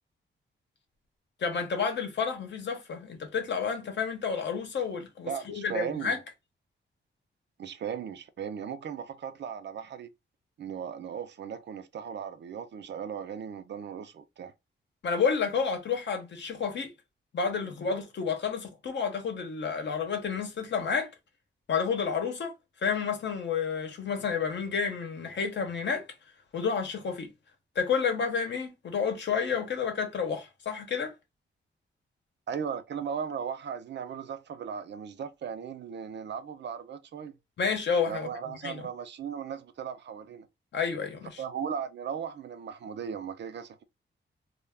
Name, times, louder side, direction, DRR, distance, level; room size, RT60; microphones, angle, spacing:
voice 1, 1.4-6.2 15.0-16.9 17.3-21.1 21.7-22.5 22.8-26.1 26.5-27.3 27.8-31.1 37.6-38.3 38.6-38.9 40.7-41.4, left 6 dB, 60° left, 0.8 m, -30 dB
voice 2, 5.3-6.2 7.6-10.1 10.6-14.5 32.5-37.4 38.1-40.5 41.4-43.8, right 7 dB, 60° right, 0.4 m, -37 dB
2.3 x 2.1 x 3.3 m
wide cardioid pair, 105°, 20 cm